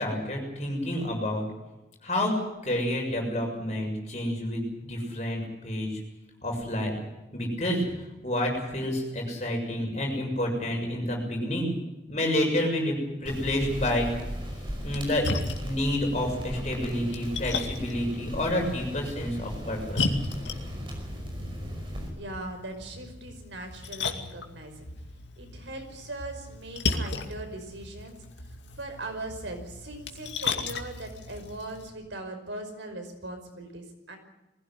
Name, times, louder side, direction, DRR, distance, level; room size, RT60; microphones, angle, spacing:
voice 1, 0.0-1.4 2.0-2.3 2.6-6.0 6.4-6.9 7.3-7.9 8.2-11.7 12.1-12.9 13.2-14.1 14.8-20.2, left 1 dB, 35° left, 1 dB, 6.9 m, -29 dB
sound 1, 13.3-22.1, equal, 25° right, 5.4 m, -37 dB
Splash splatter, 14.8-31.9, left 3 dB, 75° left, 2.4 m, -36 dB
voice 2, 22.2-24.9 25.4-28.2 28.8-34.2, right 2 dB, 85° right, 5 dB, 5.3 m, -40 dB
21.5 x 16.0 x 9.6 m, 1.0 s
head